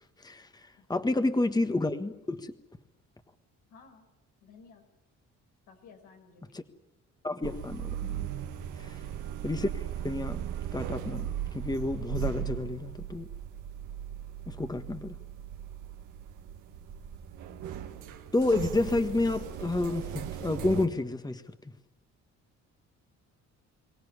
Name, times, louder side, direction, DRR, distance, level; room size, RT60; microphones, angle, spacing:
voice 1, 0.2-2.5 7.2-8.3 8.8-8.9 9.4-10.4 10.7-13.3 14.5-15.1 18.3-21.4, left 2 dB, 15° left, 9 dB, 1.4 m, -30 dB
voice 2, 0.8-1.1 3.7-4.1 4.4-4.9 5.7-6.6 8.8-9.2 14.6-14.8, left 5 dB, 90° left, 3 dB, 5.2 m, -56 dB
sound 1, 7.4-20.9, right 9 dB, 90° right, 2.0 m, -38 dB
23.5 x 18.0 x 9.7 m, 0.95 s
cardioid pair, 90°, 30 cm